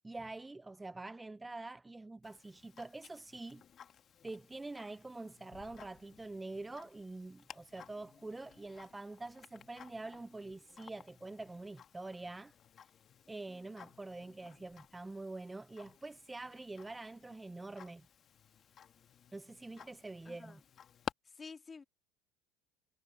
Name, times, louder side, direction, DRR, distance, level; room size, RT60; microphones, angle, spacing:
voice 1, 0.0-3.6 4.2-12.5 13.3-18.1 19.3-20.6, right 2 dB, 10° right, 0.3 m, -46 dB
Tick-tock, 2.2-21.1, left 8 dB, 40° left, 1.6 m, -55 dB
voice 2, 20.3-20.6 21.2-21.8, left 4 dB, 25° left, 2.2 m, -51 dB
hypercardioid pair, 90°, 0 cm